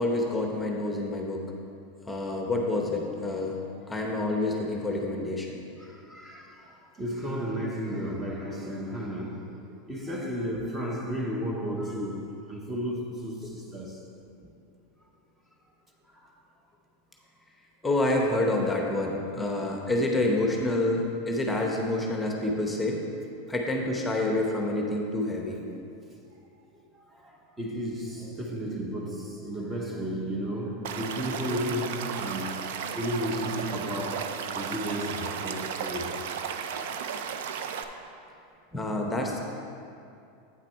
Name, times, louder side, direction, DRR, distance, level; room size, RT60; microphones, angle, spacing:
voice 1, 0.0-1.4 2.1-3.6 3.9-5.6 17.8-23.0 23.5-25.6 38.7-39.4, left 2 dB, 10° left, 0.9 m, -28 dB
voice 2, 5.8-6.6 7.0-9.6 9.9-14.0 27.2-36.2 37.9-38.1, equal, 15° right, 0.9 m, -33 dB
Stream / Liquid, 30.8-37.8, right 7 dB, 70° right, 0.5 m, -34 dB
8.7 x 5.8 x 4.5 m
hypercardioid pair, 115°, 0 cm